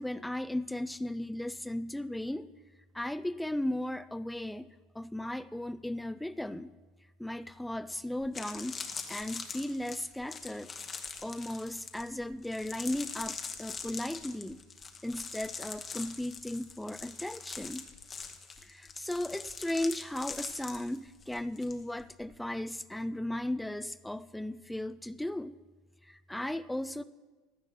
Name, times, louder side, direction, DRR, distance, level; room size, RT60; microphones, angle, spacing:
voice 1, 0.0-2.5 2.9-4.7 4.9-6.7 7.2-8.8 9.1-10.7 11.2-14.6 15.0-17.9 18.6-25.6 26.0-27.0, left 1 dB, 5° left, 15 dB, 0.4 m, -36 dB
sound 1, 7.7-7.8 8.2-21.7 22.0-22.3, left 5 dB, 25° left, 1.0 m, -43 dB
15.0 x 11.0 x 3.7 m, 1.3 s
supercardioid pair, 115°, 0 cm